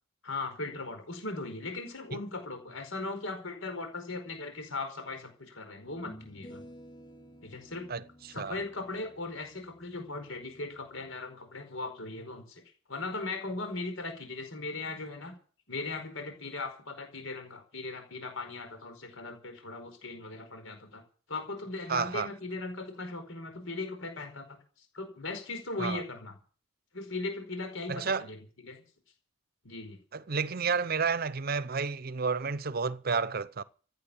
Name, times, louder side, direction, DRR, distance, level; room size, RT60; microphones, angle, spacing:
voice 1, 0.2-6.6 7.4-7.9 8.3-12.6 12.9-15.3 15.7-21.0 21.3-24.6 24.9-26.3 26.9-28.4 28.6-28.8 29.6-30.0, left 3 dB, 80° left, 5.0 m, -38 dB
sound 1, 5.8-11.1, equal, 25° left, 4.2 m, -53 dB
voice 2, 21.9-22.3 25.8-26.0 27.9-28.3 30.1-33.6, right 5 dB, 50° right, 0.7 m, -31 dB
15.5 x 9.5 x 8.5 m
head